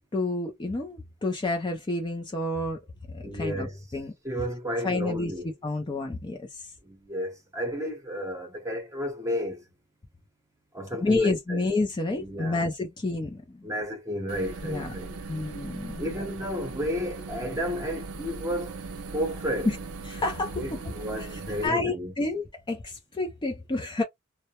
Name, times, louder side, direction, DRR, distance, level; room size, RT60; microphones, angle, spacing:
voice 1, 0.1-2.8 3.1-3.7 3.9-4.1 4.8-5.3 5.6-6.7 11.0-13.7 14.7-14.9 15.3-16.0 19.7-19.8 20.1-20.6 21.6-24.0, left 2 dB, 20° left, 0.4 m, -29 dB
voice 2, 3.2-3.9 4.2-5.5 6.8-9.7 10.7-11.7 12.1-12.7 13.6-15.2 16.0-18.8 19.1-19.7 20.6-22.1, equal, 15° right, 0.8 m, -32 dB
sound 1, 14.3-21.7, right 3 dB, 80° right, 0.5 m, -39 dB
2.1 x 2.1 x 2.8 m
head